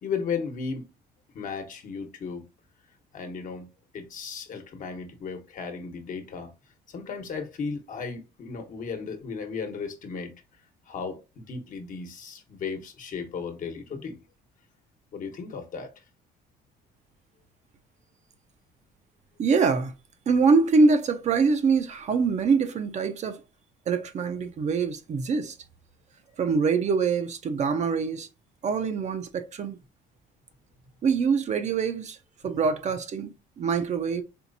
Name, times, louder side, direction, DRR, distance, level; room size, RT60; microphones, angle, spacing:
voice 1, 0.0-0.8 1.3-2.4 3.1-3.7 3.9-6.5 6.9-10.3 10.9-14.2 15.1-15.9, left 5 dB, 50° left, 1.1 m, -35 dB
voice 2, 19.4-19.9 20.3-23.4 23.9-25.6 26.4-28.3 28.6-29.8 31.0-32.2 32.4-34.2, right 4 dB, 45° right, 0.6 m, -24 dB
4.5 x 3.1 x 2.6 m
cardioid pair, 110°, 17 cm